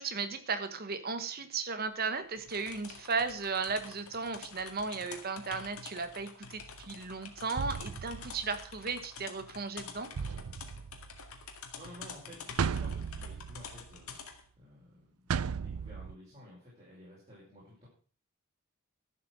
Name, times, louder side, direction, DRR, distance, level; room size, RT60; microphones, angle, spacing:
voice 1, 0.0-10.1, right 4 dB, 45° right, 11 dB, 1.2 m, -35 dB
sound 1, 2.4-14.4, left 5 dB, 85° left, 2.1 m, -48 dB
sound 2, 6.6-6.8 7.6-8.9 10.2-11.5 12.6-14.1 15.3-16.2, right 6 dB, 80° right, 0.5 m, -36 dB
voice 2, 11.7-14.1 14.6-15.0 15.3-17.9, equal, 30° right, -7 dB, 6.0 m, -52 dB
12.5 x 7.8 x 6.3 m, 0.43 s
head